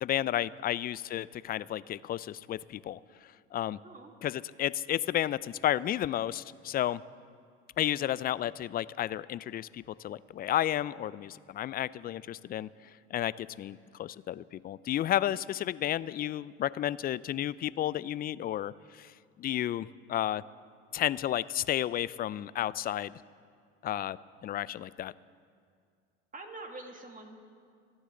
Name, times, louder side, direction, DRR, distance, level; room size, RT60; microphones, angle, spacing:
voice 1, 0.0-3.0 3.5-3.8 4.2-7.0 7.8-12.7 13.1-19.1 19.4-20.4 20.9-23.2 23.8-24.2 24.4-25.1, left 12 dB, 30° left, 19 dB, 0.4 m, -32 dB
voice 2, 26.3-27.3, right 2 dB, 25° right, 2 dB, 2.3 m, -45 dB
27.5 x 9.9 x 3.8 m, 2.2 s
hypercardioid pair, 75°, 33 cm